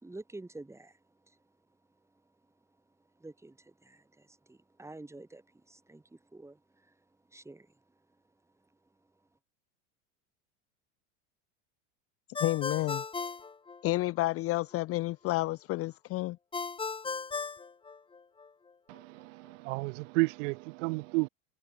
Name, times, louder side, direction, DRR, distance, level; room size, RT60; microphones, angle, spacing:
voice 1, 0.0-1.4 3.2-7.0 7.3-7.7, right 2 dB, 5° right, 4.6 m, -49 dB
Ringtone, 12.3-14.3 16.5-18.5, left 4 dB, 15° left, 1.6 m, -37 dB
voice 2, 12.4-13.0 13.8-16.4, left 18 dB, 40° left, 0.7 m, -30 dB
voice 3, 18.9-21.3, right 26 dB, 75° right, 1.0 m, -32 dB
supercardioid pair, 125°, 38 cm